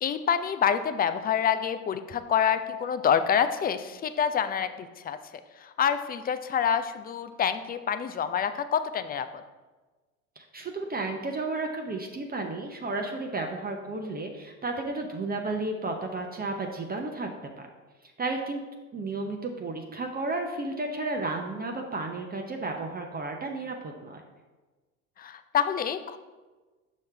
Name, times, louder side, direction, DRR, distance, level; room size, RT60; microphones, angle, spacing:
voice 1, 0.0-5.2 5.6-9.4 25.2-26.2, left 8 dB, 25° left, 11 dB, 0.4 m, -27 dB
voice 2, 10.4-17.3 17.6-17.7 18.2-18.6 18.9-24.2, right 2 dB, 25° right, 3 dB, 0.7 m, -33 dB
6.2 x 5.6 x 3.3 m, 1.3 s
hypercardioid pair, 75°, 40 cm